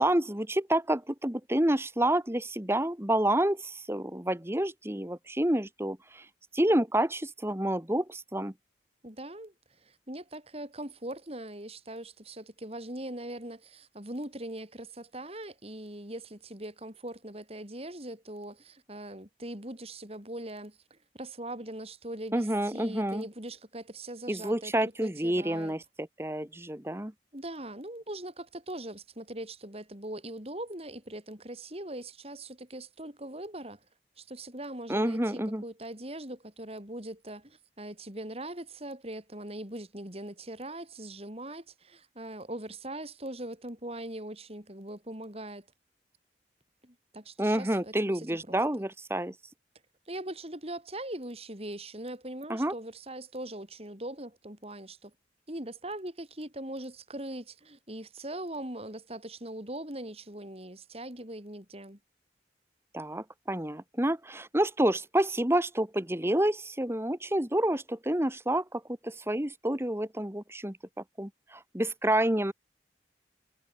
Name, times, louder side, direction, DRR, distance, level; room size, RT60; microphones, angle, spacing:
voice 1, 0.0-6.3 6.5-8.5 22.3-23.3 24.3-27.1 34.9-35.6 47.4-49.3 52.5-52.7 62.9-72.5, right 1 dB, 15° right, 1.7 m, -29 dB
voice 2, 9.0-25.7 27.3-33.8 34.2-45.7 46.8-48.8 50.1-55.1 55.5-62.0, right 1 dB, 35° right, 6.3 m, -41 dB
head